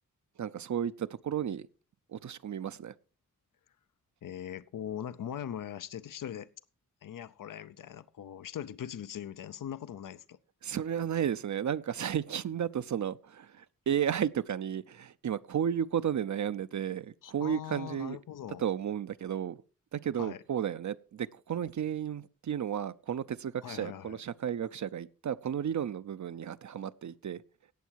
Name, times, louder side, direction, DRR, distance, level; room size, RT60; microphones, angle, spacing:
voice 1, 0.4-1.7 2.1-2.9 10.6-18.2 18.6-19.6 19.9-27.4, right 9 dB, 60° right, 0.6 m, -33 dB
voice 2, 4.2-6.5 7.0-10.4 17.2-18.6 20.2-20.4 23.6-24.2, left 10 dB, 80° left, 0.6 m, -41 dB
17.5 x 7.3 x 4.6 m
wide cardioid pair, 105°, 32 cm